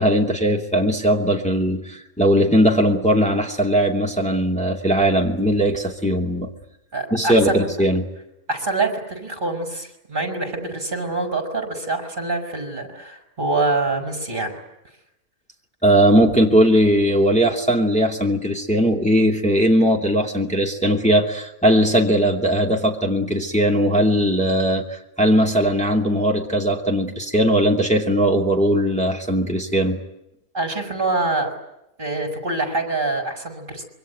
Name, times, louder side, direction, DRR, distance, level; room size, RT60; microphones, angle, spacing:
voice 1, 0.0-6.5 7.1-8.1 15.8-30.0, equal, 5° left, 0 dB, 2.7 m, -19 dB
voice 2, 6.9-7.6 8.5-14.6 30.5-31.5 32.0-33.8, right 3 dB, 35° right, 6 dB, 5.1 m, -25 dB
26.5 x 23.0 x 9.2 m, 0.87 s
omnidirectional pair, 1.5 m